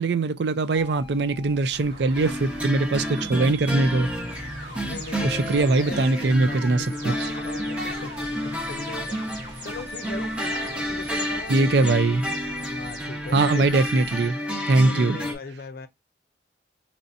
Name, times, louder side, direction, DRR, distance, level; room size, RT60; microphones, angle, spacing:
voice 1, 0.0-4.1 5.2-7.3 11.5-12.2 13.3-14.4 14.7-15.2, right 3 dB, 70° right, 0.5 m, -22 dB
sound 1, 0.7-14.3, equal, 25° right, 2.2 m, -43 dB
sound 2, 1.7-12.9, right 1 dB, 85° right, 1.5 m, -43 dB
sound 3, 2.1-15.3, equal, 5° right, 1.0 m, -30 dB
voice 2, 4.8-11.9 12.6-13.6 14.7-15.9, left 2 dB, 55° left, 0.5 m, -38 dB
4.0 x 3.0 x 2.6 m
head